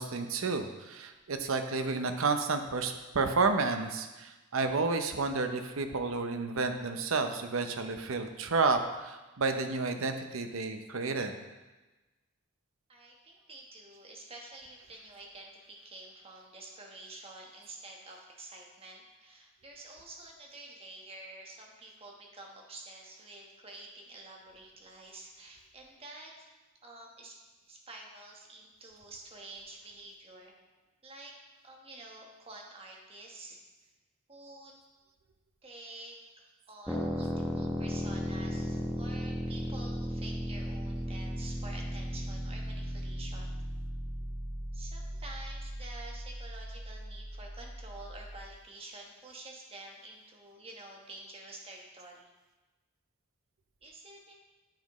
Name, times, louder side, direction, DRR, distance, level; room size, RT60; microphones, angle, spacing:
voice 1, 0.0-11.3, right 4 dB, 75° right, 7 dB, 0.7 m, -31 dB
voice 2, 12.9-26.5 26.8-27.4 27.7-30.5 31.0-31.3 31.6-33.9 34.3-34.7 35.6-36.2 36.7-43.5 44.7-52.3 53.8-54.3, right 2 dB, 25° right, 0 dB, 1.2 m, -49 dB
sound 1, 36.9-48.5, equal, 5° right, 0.8 m, -36 dB
9.0 x 7.4 x 3.1 m, 1.2 s
head